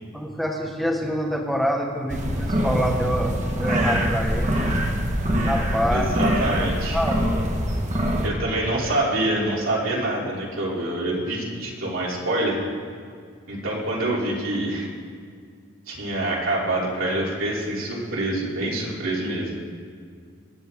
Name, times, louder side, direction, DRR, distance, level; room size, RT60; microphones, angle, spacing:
voice 1, 0.1-4.7 5.5-6.1 6.9-7.4, equal, ahead, 1 dB, 1.4 m, -26 dB
sound 1, 2.1-8.3, equal, 35° right, 1.3 m, -24 dB
voice 2, 5.9-7.0 8.2-12.6 13.5-14.9 15.9-19.6, right 1 dB, 80° right, -4 dB, 3.1 m, -26 dB
24.0 x 9.1 x 3.7 m, 2.1 s
head